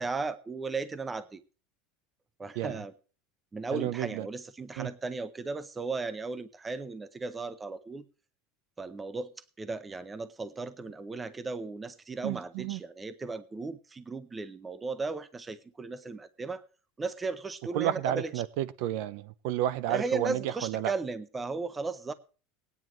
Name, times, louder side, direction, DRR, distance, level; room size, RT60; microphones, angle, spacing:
voice 1, 0.0-1.4 2.4-2.9 3.5-8.0 8.8-9.3 9.6-16.6 17.0-18.3 19.9-22.1, right 3 dB, 10° right, 0.6 m, -36 dB
voice 2, 3.7-4.3 4.8-4.9 12.2-12.8 17.7-20.9, right 13 dB, 60° right, 0.5 m, -31 dB
18.5 x 9.5 x 3.1 m
supercardioid pair, 165°, 0 cm